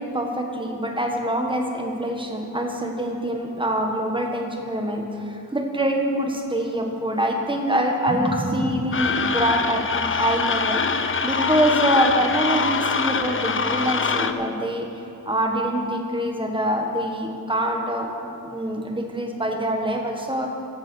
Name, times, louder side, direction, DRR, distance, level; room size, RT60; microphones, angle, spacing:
voice 1, 0.0-14.9 15.2-18.1 18.4-20.5, right 1 dB, 15° right, 2 dB, 1.6 m, -25 dB
sound 1, 8.9-14.3, left 5 dB, 35° left, 0.6 m, -24 dB
14.5 x 8.3 x 6.4 m, 2.7 s
wide cardioid pair, 115°, 36 cm